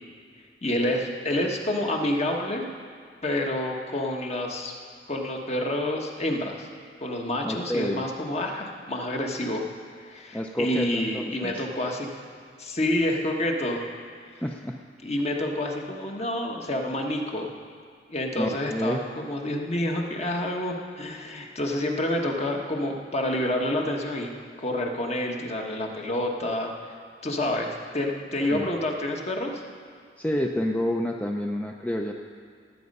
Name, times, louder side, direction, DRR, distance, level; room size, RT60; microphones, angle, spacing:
voice 1, 0.6-2.7 3.2-4.7 5.1-6.7 7.0-9.7 10.0-12.1 12.6-13.8 14.3-14.4 15.0-17.5 18.1-24.3 24.6-26.9 27.2-29.6, left 1 dB, 40° left, 1 dB, 1.3 m, -28 dB
voice 2, 7.4-8.1 10.3-11.7 14.4-14.8 18.4-19.1 28.4-28.7 30.2-32.1, equal, 10° left, 2 dB, 0.5 m, -29 dB
18.0 x 8.4 x 5.4 m, 2.2 s
head